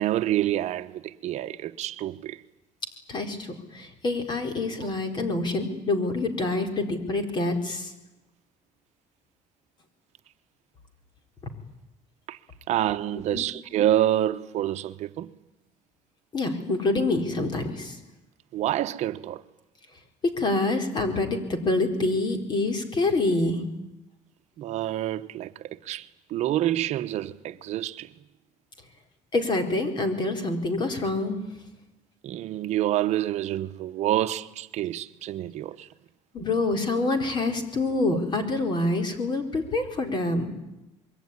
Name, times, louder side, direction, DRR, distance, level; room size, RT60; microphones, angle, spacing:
voice 1, 0.0-2.4 12.3-12.4 12.7-15.3 18.5-19.4 24.6-28.1 32.2-35.9 38.1-38.2, right 13 dB, 60° right, 0.9 m, -27 dB
voice 2, 3.1-7.9 13.3-13.4 16.3-18.0 20.2-23.6 29.3-31.4 36.3-40.5, left 2 dB, 35° left, 4.2 m, -26 dB
25.5 x 22.5 x 9.8 m
cardioid pair, 140°, 13 cm